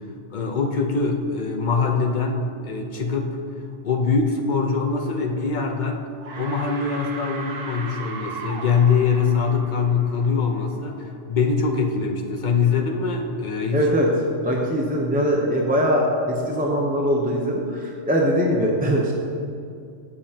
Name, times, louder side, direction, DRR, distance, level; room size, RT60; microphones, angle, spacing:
voice 1, 0.3-3.4 3.8-6.0 6.3-13.8, left 5 dB, 45° left, 2 dB, 1.0 m, -23 dB
sound 1, 5.7-5.9 6.2-10.8, right 4 dB, 60° right, 1.1 m, -37 dB
voice 2, 13.7-14.1 14.4-19.1, equal, 10° right, -2 dB, 0.8 m, -21 dB
15.5 x 7.0 x 2.9 m, 2.5 s
omnidirectional pair, 1.2 m